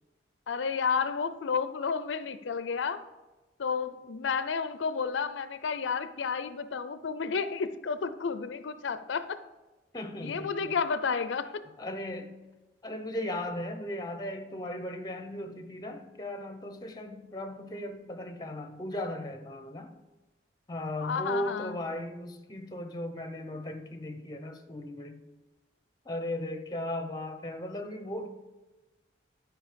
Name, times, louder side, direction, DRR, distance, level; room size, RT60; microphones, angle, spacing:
voice 1, 0.5-3.0 3.6-9.4 10.2-11.7 21.0-21.7, left 5 dB, 90° left, 13 dB, 0.5 m, -31 dB
voice 2, 9.9-10.8 11.8-12.4 12.8-19.9 20.7-25.2 26.0-28.3, left 1 dB, 20° left, 7 dB, 0.8 m, -37 dB
12.0 x 5.1 x 5.1 m, 1.1 s
head